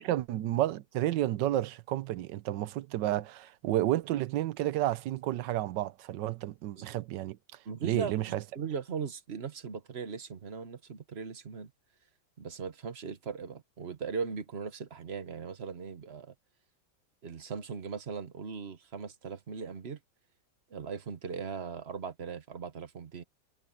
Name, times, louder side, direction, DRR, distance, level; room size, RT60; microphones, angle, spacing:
voice 1, 0.0-7.4 7.8-8.4, right 14 dB, 90° right, 1.3 m, -31 dB
voice 2, 7.6-8.2 8.5-11.7 12.4-16.3 17.2-20.0 20.7-23.2, right 6 dB, 40° right, 1.3 m, -39 dB
omnidirectional pair, 1.9 m